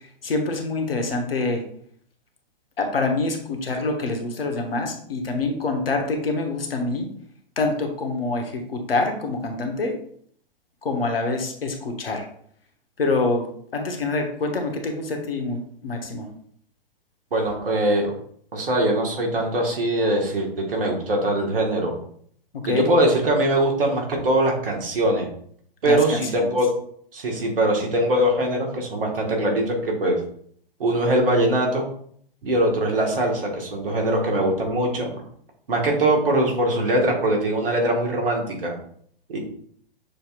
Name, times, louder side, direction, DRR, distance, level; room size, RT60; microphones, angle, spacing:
voice 1, 0.2-1.6 2.8-7.1 7.6-9.9 10.8-12.3 13.0-13.5 13.7-16.3 22.5-22.9 25.8-26.5, left 3 dB, 80° left, 4 dB, 1.0 m, -26 dB
voice 2, 17.3-18.1 18.5-22.0 22.6-25.3 25.8-26.7 27.1-30.2 30.8-31.9 32.4-35.1 35.7-38.7 39.3-39.4, right 1 dB, 70° right, 0 dB, 1.5 m, -22 dB
6.6 x 2.8 x 2.4 m, 0.62 s
figure-of-eight pair, 115°, 29 cm